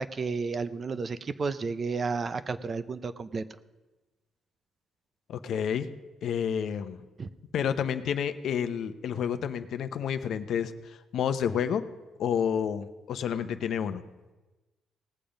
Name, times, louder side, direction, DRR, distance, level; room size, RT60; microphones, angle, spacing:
voice 1, 0.0-3.4 7.2-7.3, right 4 dB, 40° right, 14 dB, 0.6 m, -32 dB
voice 2, 5.3-5.9 6.2-7.0 7.5-11.8 12.2-14.0, left 8 dB, 70° left, 10 dB, 0.7 m, -30 dB
18.5 x 7.0 x 5.2 m, 1.2 s
cardioid pair, 90°, 0 cm